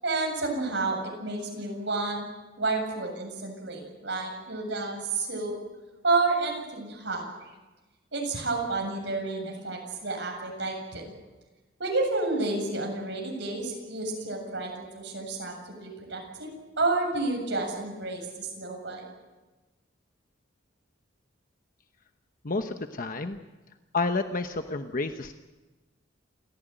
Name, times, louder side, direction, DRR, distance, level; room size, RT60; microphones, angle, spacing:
voice 1, 0.0-2.2 2.6-5.5 6.0-7.5 8.1-11.0 11.8-19.1, right 3 dB, 65° right, 1 dB, 7.8 m, -30 dB
voice 2, 22.4-23.4 23.9-25.3, left 3 dB, 45° left, 7 dB, 1.0 m, -30 dB
28.5 x 15.5 x 9.2 m, 1.2 s
head